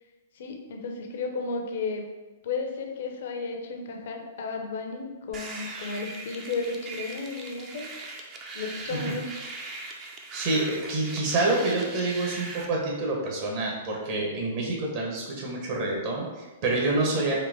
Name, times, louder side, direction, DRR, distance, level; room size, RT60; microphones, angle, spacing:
voice 1, 0.3-2.1 2.4-7.9 8.5-9.3, left 4 dB, 55° left, 3 dB, 0.7 m, -33 dB
sound 1, 5.3-12.7, right 3 dB, 25° right, 0.7 m, -40 dB
voice 2, 10.3-17.3, right 2 dB, 45° right, -3 dB, 1.4 m, -27 dB
4.8 x 2.9 x 3.6 m, 1.2 s
figure-of-eight pair, 110°, 0 cm